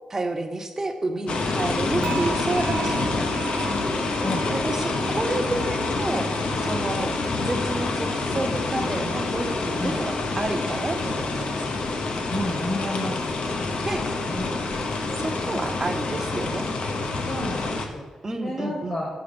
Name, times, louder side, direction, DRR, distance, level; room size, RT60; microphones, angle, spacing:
voice 1, 0.1-3.7 4.5-6.3 6.6-7.1 7.4-11.8 13.8-14.1 15.2-16.7 18.2-19.0, right 2 dB, 20° right, 5 dB, 0.7 m, -30 dB
sound 1, 1.3-17.9, left 3 dB, 60° left, 0.9 m, -27 dB
sound 2, 2.0-9.1 9.4-9.8 10.3-10.4, right 6 dB, 60° right, 0.4 m, -39 dB
voice 2, 4.2-4.5 9.8-10.0 12.3-13.5 14.3-14.6 15.5-16.0 17.2-18.0 18.4-19.1, left 1 dB, 35° left, -3 dB, 1.3 m, -31 dB
8.0 x 6.1 x 5.1 m, 1.3 s
wide cardioid pair, 175°, 2 cm